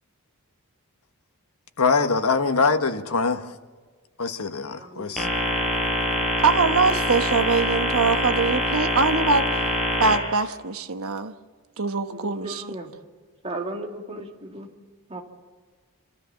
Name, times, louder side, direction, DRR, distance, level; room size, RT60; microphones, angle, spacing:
voice 1, 1.8-3.5 4.2-5.3, left 4 dB, 80° left, 1.3 m, -23 dB
voice 2, 4.8-5.3 12.2-12.9 13.4-14.3 14.5-14.7 15.1-15.2, right 1 dB, 25° right, 2.5 m, -35 dB
sound 1, 5.2-10.1, left 1 dB, ahead, 6.9 m, -24 dB
voice 3, 6.4-9.4 10.0-11.3 11.8-12.8, right 4 dB, 70° right, 1.2 m, -23 dB
29.0 x 13.5 x 7.2 m
head